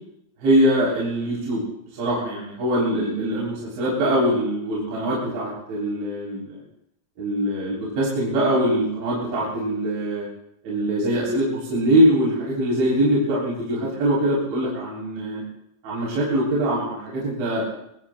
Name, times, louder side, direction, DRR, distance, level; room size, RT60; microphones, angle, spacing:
voice 1, 0.4-1.6 1.9-6.6 7.2-10.3 10.6-15.4 15.8-17.8, right 1 dB, 70° right, -6 dB, 5.9 m, -23 dB
24.0 x 23.5 x 2.2 m, 0.79 s
omnidirectional pair, 5.4 m